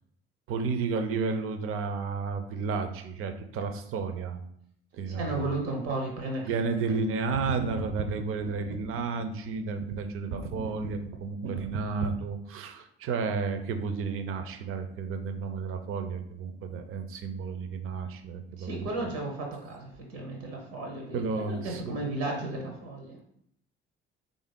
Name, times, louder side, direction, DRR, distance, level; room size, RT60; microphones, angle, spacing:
voice 1, 0.5-4.5 4.9-5.5 6.4-18.9 21.1-22.0, right 4 dB, 45° right, 8 dB, 0.5 m, -32 dB
voice 2, 5.1-6.5 18.6-23.2, right 2 dB, 75° right, 1 dB, 0.7 m, -34 dB
3.4 x 2.6 x 3.5 m, 0.70 s
figure-of-eight pair, 50°, 32 cm